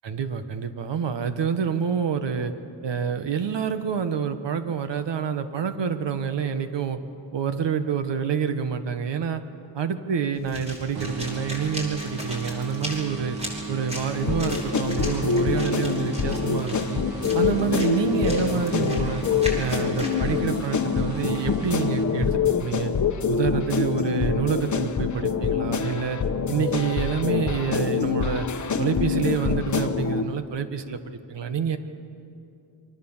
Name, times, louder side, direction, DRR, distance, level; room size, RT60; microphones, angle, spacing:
voice 1, 0.0-2.5 2.8-7.0 7.3-9.4 9.7-13.4 13.7-17.0 17.3-19.2 19.6-22.9 23.3-26.2 26.5-28.5 28.8-31.0 31.3-31.8, right 6 dB, 70° right, 9 dB, 1.5 m, -27 dB
sound 1, 10.3-20.1, left 1 dB, 15° right, 5.3 m, -38 dB
sound 2, 10.9-22.7, right 4 dB, 55° right, 1.8 m, -36 dB
sound 3, 14.2-30.2, left 6 dB, 40° left, 1.1 m, -25 dB
28.5 x 24.0 x 7.4 m, 2.7 s
wide cardioid pair, 165°, 45 cm